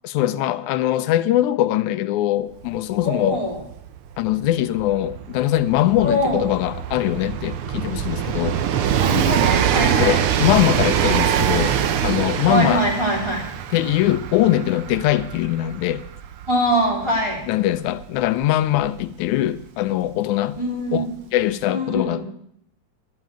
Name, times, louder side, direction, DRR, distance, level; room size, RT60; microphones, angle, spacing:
voice 1, 0.0-3.4 4.2-8.6 10.0-11.8 12.0-12.8 13.7-16.0 17.5-20.6 20.9-21.1 21.3-22.3, left 13 dB, 90° left, 2.1 m, -21 dB
Train, 2.7-2.8 3.0-19.6 20.6-20.7, right 9 dB, 65° right, 1.4 m, -24 dB
voice 2, 3.0-3.6 6.0-6.4 9.0-10.2 10.8-10.9 12.5-13.5 16.5-17.4 20.6-21.1 21.7-22.3, equal, 10° right, 3.3 m, -23 dB
11.5 x 8.2 x 8.9 m
omnidirectional pair, 3.3 m